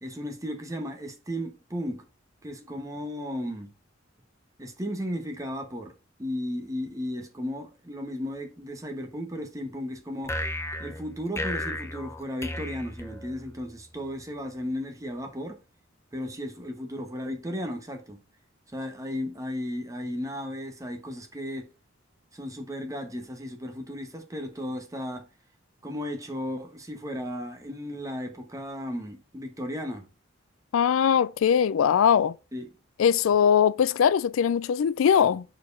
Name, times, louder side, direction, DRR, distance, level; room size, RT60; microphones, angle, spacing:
voice 1, 0.0-2.0 2.4-3.7 4.6-5.9 6.2-10.3 10.8-15.6 16.1-18.2 18.7-21.7 22.3-25.3 25.8-30.1 32.5-32.7, equal, 15° right, 1.3 m, -35 dB
sound 1, 10.2-13.7, left 1 dB, 15° left, 0.7 m, -34 dB
voice 2, 30.7-32.3 33.0-35.4, left 8 dB, 90° left, 0.3 m, -21 dB
4.8 x 4.6 x 5.4 m
head